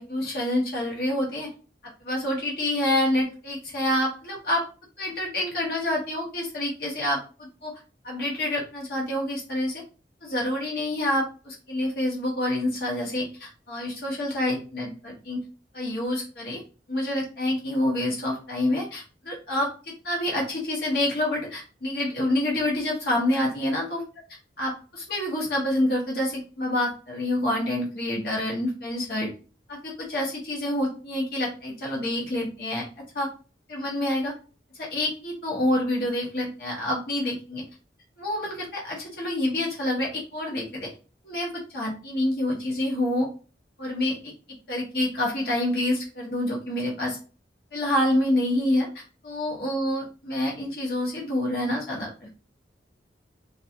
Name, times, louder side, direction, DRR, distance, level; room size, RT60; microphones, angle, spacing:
voice 1, 0.0-1.5 2.0-4.7 5.0-9.8 10.2-15.4 15.7-16.6 16.9-24.0 24.6-29.3 29.7-32.8 33.1-33.3 33.7-34.3 34.8-37.6 38.2-40.9 41.2-43.3 43.8-44.3 44.7-47.2 47.7-52.3, left 1 dB, 55° left, -3 dB, 0.8 m, -27 dB
2.3 x 2.3 x 2.7 m, 0.35 s
head